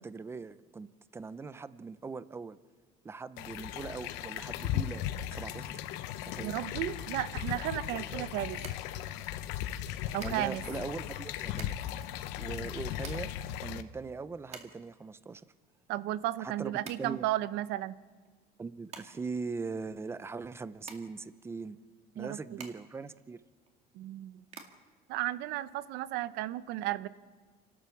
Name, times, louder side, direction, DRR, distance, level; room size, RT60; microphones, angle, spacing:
voice 1, 0.0-2.6 3.0-5.0 5.3-5.8 6.2-6.6 8.1-8.4 10.0-11.7 12.4-13.3 13.6-15.4 16.4-16.7 17.0-17.3 18.6-21.8 22.1-23.4, right 4 dB, 15° right, 15 dB, 0.6 m, -41 dB
sound 1, 3.4-13.8, left 12 dB, 90° left, 1.0 m, -37 dB
voice 2, 6.4-8.6 10.1-10.6 15.9-18.0 22.2-22.6 23.9-24.4 25.1-27.1, right 14 dB, 80° right, 15 dB, 0.9 m, -34 dB
sound 2, 8.6-26.2, right 6 dB, 40° right, 2.2 m, -53 dB
29.0 x 12.5 x 7.2 m, 1.4 s
cardioid pair, 145°, 17 cm